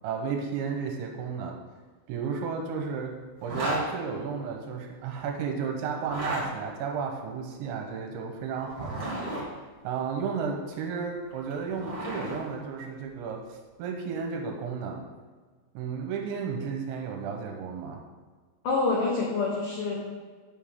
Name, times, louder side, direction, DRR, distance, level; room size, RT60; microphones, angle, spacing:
voice 1, 0.0-1.6 2.1-3.2 3.4-9.2 9.8-15.1 15.7-18.0, right 6 dB, 80° right, 3 dB, 3.1 m, -33 dB
Zipper (clothing), 3.4-3.8 6.0-6.4 8.6-9.4 11.3-12.4, right 1 dB, 45° right, 1.4 m, -33 dB
voice 2, 18.6-20.0, left 3 dB, 85° left, -3 dB, 1.8 m, -26 dB
8.9 x 7.0 x 3.6 m, 1.5 s
omnidirectional pair, 5.5 m